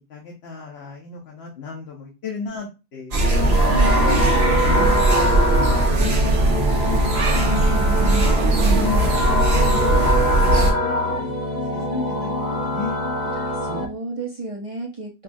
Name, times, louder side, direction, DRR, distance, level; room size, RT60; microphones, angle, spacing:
voice 1, 0.1-4.2 4.6-7.7 8.0-10.4 11.1-13.0, left 4 dB, 80° left, -2 dB, 1.2 m, -35 dB
sound 1, 3.1-10.7, right 2 dB, 85° right, 1.2 m, -19 dB
sound 2, 3.2-13.8, left 1 dB, 45° left, 1.0 m, -23 dB
voice 2, 3.7-4.0 4.8-5.1 7.4-8.2 13.4-15.2, right 1 dB, 40° right, -1 dB, 0.6 m, -32 dB
5.3 x 2.3 x 2.6 m, 0.28 s
omnidirectional pair, 1.0 m